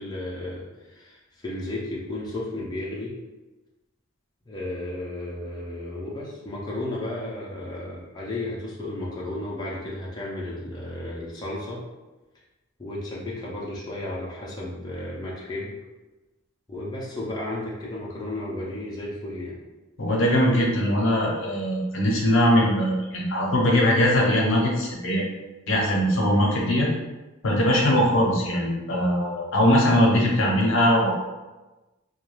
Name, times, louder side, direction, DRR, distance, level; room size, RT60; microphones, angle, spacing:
voice 1, 0.0-3.1 4.5-11.8 12.8-15.7 16.7-19.6 26.3-26.7, left 1 dB, 20° left, -5 dB, 0.4 m, -33 dB
voice 2, 20.0-25.3 25.7-26.9 27.4-31.1, equal, 70° left, -2 dB, 0.6 m, -21 dB
2.2 x 2.2 x 3.1 m, 1.1 s
head